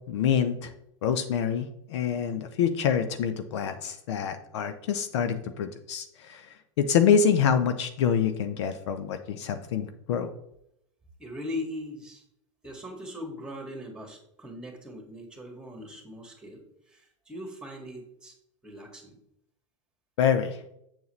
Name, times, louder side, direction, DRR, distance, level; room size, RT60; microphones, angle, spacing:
voice 1, 0.1-0.7 1.0-6.5 6.8-10.3 20.2-20.6, left 7 dB, 60° left, 9 dB, 0.7 m, -26 dB
voice 2, 11.2-12.2 12.6-18.3 18.6-19.2, left 1 dB, 5° right, 2 dB, 2.0 m, -40 dB
7.5 x 7.0 x 3.2 m, 0.75 s
figure-of-eight pair, 95°, 17 cm